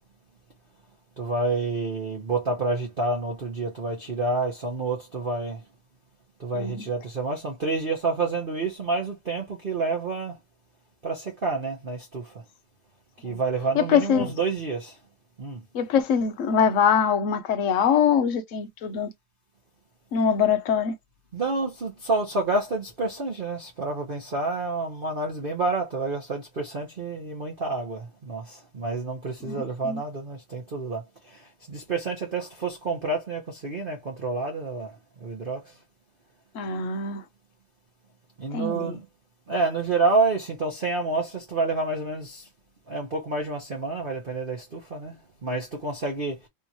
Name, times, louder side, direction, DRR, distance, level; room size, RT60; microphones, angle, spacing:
voice 1, 1.2-5.6 6.4-10.3 11.0-12.2 13.2-14.9 15.4-15.6 21.3-28.0 28.3-28.4 28.7-31.0 31.7-34.9 35.2-35.6 38.4-39.0 39.5-42.4 42.9-45.1 45.4-46.3, right 3 dB, 45° right, 0.7 m, -28 dB
voice 2, 6.5-6.9 13.2-13.4 13.7-14.3 15.7-19.1 20.1-20.9 29.4-30.0 36.5-37.2 38.5-38.9, left 7 dB, 75° left, 0.7 m, -23 dB
3.5 x 3.0 x 2.7 m
omnidirectional pair, 2.1 m